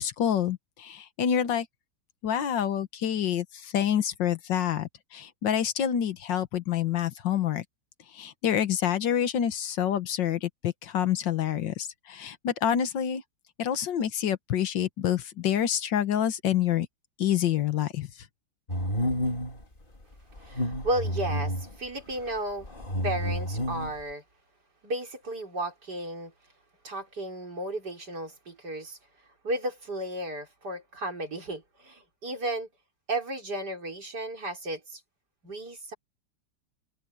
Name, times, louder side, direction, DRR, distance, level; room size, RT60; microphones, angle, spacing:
voice 1, 0.0-1.7 2.2-7.6 8.1-13.2 13.6-16.9 17.2-18.1, left 9 dB, 80° left, 1.9 m, -27 dB
sound 1, 18.7-19.6 20.4-21.7 22.6-24.0, equal, 30° left, 3.3 m, -30 dB
voice 2, 20.4-22.7 23.0-24.2 24.8-26.3 26.8-29.0 29.4-32.7 33.1-35.0 35.4-35.9, right 1 dB, 60° right, 5.3 m, -34 dB
omnidirectional pair, 1.9 m